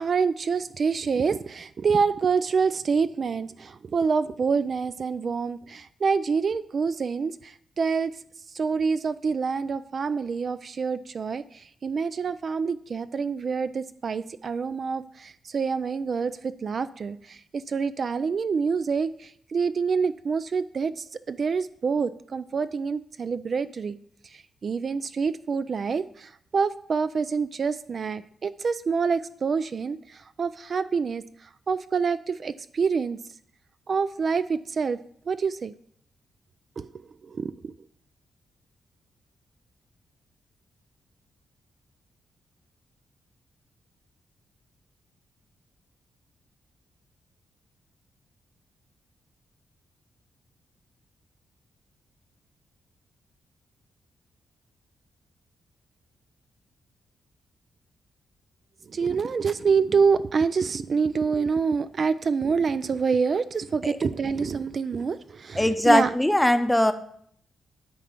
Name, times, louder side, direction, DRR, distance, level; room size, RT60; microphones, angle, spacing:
voice 1, 0.0-8.1 8.5-24.0 24.2-33.2 33.9-35.0 35.3-35.7 36.8-37.7 58.8-66.1, right 5 dB, 50° right, 13 dB, 0.3 m, -27 dB
voice 2, 65.6-66.9, left 1 dB, 10° left, 9 dB, 0.7 m, -20 dB
10.0 x 3.8 x 5.6 m, 0.64 s
cardioid pair, 85°, 0 cm